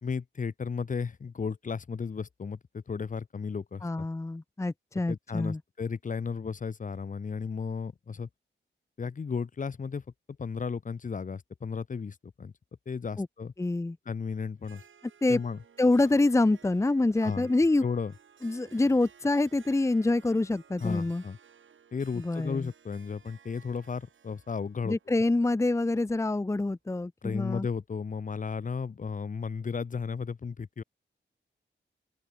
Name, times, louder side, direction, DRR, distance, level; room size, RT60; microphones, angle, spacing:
voice 1, 0.0-4.1 5.1-8.3 9.0-10.0 10.4-12.5 12.9-13.5 14.0-14.8 15.3-15.6 17.2-17.5 17.8-18.1 20.8-21.4 21.9-25.0 27.2-30.8, left 5 dB, 40° left, 1.3 m, -34 dB
voice 2, 3.8-5.6 13.2-13.3 13.6-14.0 15.2-15.4 15.8-17.8 18.4-21.2 22.2-22.7 24.8-27.7, left 2 dB, 15° left, 1.0 m, -26 dB
Harp, 14.6-26.4, right 7 dB, 80° right, 7.8 m, -57 dB
open air
wide cardioid pair, 180°, 20 cm